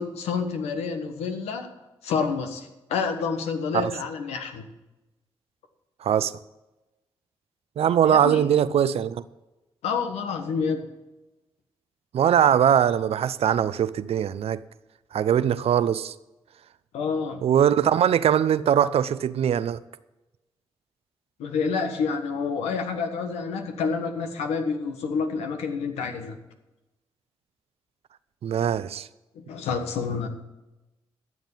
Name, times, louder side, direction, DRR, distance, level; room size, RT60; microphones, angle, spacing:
voice 1, 0.0-1.7 2.0-4.7 8.0-8.4 9.8-10.9 16.9-17.5 21.4-26.4 29.3-30.3, left 5 dB, 90° left, 1.4 m, -28 dB
voice 2, 6.0-6.3 7.8-9.2 12.1-14.6 15.1-16.1 17.4-19.8 28.4-29.1, right 9 dB, 70° right, 0.6 m, -21 dB
12.5 x 7.4 x 7.3 m
supercardioid pair, 55°, 11 cm